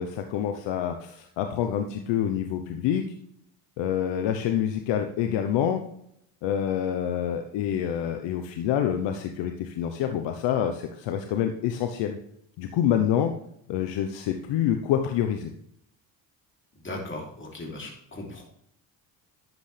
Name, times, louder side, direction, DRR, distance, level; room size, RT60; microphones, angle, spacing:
voice 1, 0.0-3.0 3.8-5.8 6.4-12.2 12.6-13.3 13.7-15.5, left 9 dB, 70° left, 6 dB, 1.0 m, -27 dB
voice 2, 16.8-18.4, left 2 dB, 25° left, -1 dB, 3.5 m, -37 dB
11.0 x 8.0 x 3.4 m, 0.72 s
supercardioid pair, 75°, 45 cm